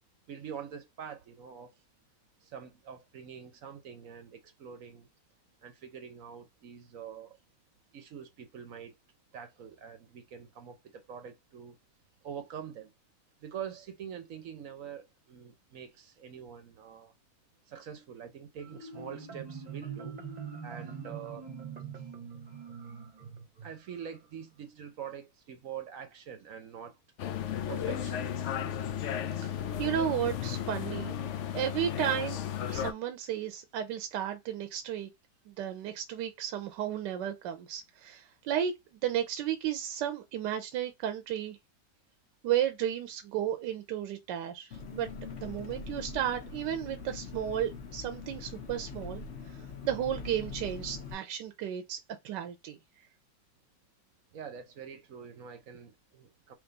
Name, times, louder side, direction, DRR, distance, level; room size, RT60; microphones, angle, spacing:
voice 1, 0.3-1.8 2.4-5.1 5.6-7.4 7.9-9.0 9.3-11.8 12.2-12.9 13.4-17.1 17.7-20.2 20.6-21.5 23.6-27.0 27.7-28.3 54.3-56.5, right 8 dB, 60° right, 1.0 m, -45 dB
Marimba xylophone, 18.6-24.1, right 6 dB, 30° right, 0.9 m, -43 dB
sound 1, 27.2-32.9, left 9 dB, 80° left, 0.6 m, -34 dB
voice 2, 29.8-31.1 31.5-32.4 32.7-35.1 35.5-38.7 39.0-41.6 42.4-49.6 49.8-52.0 52.2-52.8, right 10 dB, 85° right, 1.2 m, -33 dB
Engine, 44.7-51.1, left 5 dB, 50° left, 1.0 m, -43 dB
3.5 x 3.1 x 3.9 m
omnidirectional pair, 1.9 m